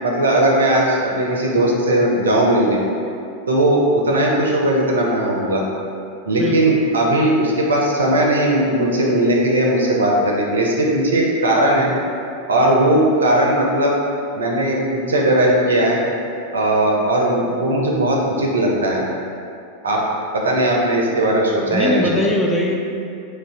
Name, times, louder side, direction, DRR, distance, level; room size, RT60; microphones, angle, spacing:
voice 1, 0.0-2.8 3.5-5.6 6.3-11.9 12.5-14.0 14.3-16.0 16.5-19.0 19.8-20.0 20.3-22.1, right 1 dB, 70° right, -2 dB, 0.4 m, -18 dB
voice 2, 6.4-6.8 21.7-22.8, left 1 dB, 10° left, -1 dB, 0.3 m, -21 dB
2.4 x 2.1 x 3.9 m, 2.5 s
figure-of-eight pair, 90°, 0 cm